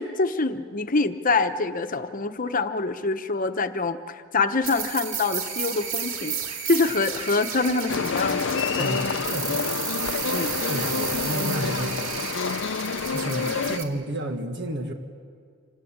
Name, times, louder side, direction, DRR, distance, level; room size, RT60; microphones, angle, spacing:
voice 1, 0.0-6.4 6.7-8.9 10.3-10.5, left 3 dB, 45° left, 9 dB, 1.0 m, -25 dB
sound 1, 4.6-13.8, right 7 dB, 90° right, 2.3 m, -32 dB
sound 2, 7.9-13.8, left 5 dB, 65° left, 0.6 m, -28 dB
voice 2, 8.8-9.6 10.7-12.3 13.1-14.9, right 1 dB, 60° right, 4 dB, 1.7 m, -31 dB
26.5 x 18.5 x 8.7 m, 2.1 s
head